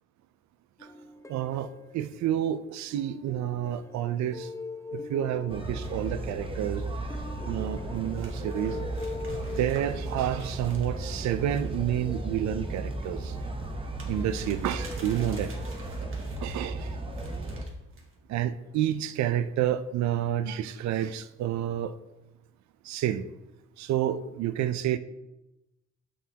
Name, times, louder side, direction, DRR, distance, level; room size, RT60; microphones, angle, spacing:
sound 1, 0.8-2.5 2.9-13.8 14.3-15.4, left 3 dB, 10° left, 0.6 m, -44 dB
voice 1, 1.3-4.5 4.9-6.8 7.5-8.8 9.6-13.4 14.1-15.5 16.4-17.0 18.3-22.0 22.8-23.3 23.8-25.0, right 11 dB, 65° right, 13 dB, 0.5 m, -29 dB
sound 2, 5.5-17.6, right 2 dB, 15° right, 0.8 m, -35 dB
sound 3, 8.1-16.6 17.1-18.1, right 2 dB, 45° right, 1.7 m, -52 dB
7.5 x 6.3 x 2.8 m, 0.94 s
cardioid pair, 90°, 30 cm